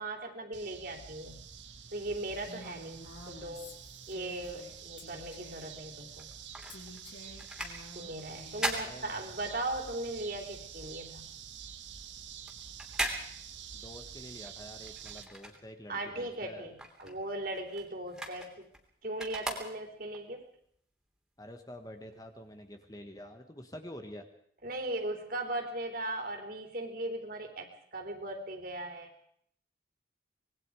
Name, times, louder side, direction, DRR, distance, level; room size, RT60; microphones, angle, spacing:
voice 1, 0.0-1.4 1.9-3.8 4.1-6.3 7.9-11.3 15.9-18.7 19.0-20.5 24.6-29.1, right 1 dB, 50° right, 4 dB, 3.8 m, -38 dB
sound 1, 0.5-15.2, right 8 dB, 75° right, 1.7 m, -48 dB
Female speech woman speaking, 2.5-4.7 5.0-5.7 6.7-8.8, left 2 dB, 80° left, 4.6 m, -51 dB
sound 2, 6.2-9.8 10.1-16.1 16.4-20.2 20.7-20.8, right 1 dB, 5° right, 3.3 m, -40 dB
voice 2, 8.7-9.1 13.7-16.7 21.4-24.2, equal, 20° left, 6 dB, 1.7 m, -47 dB
25.5 x 21.5 x 5.0 m, 0.66 s
head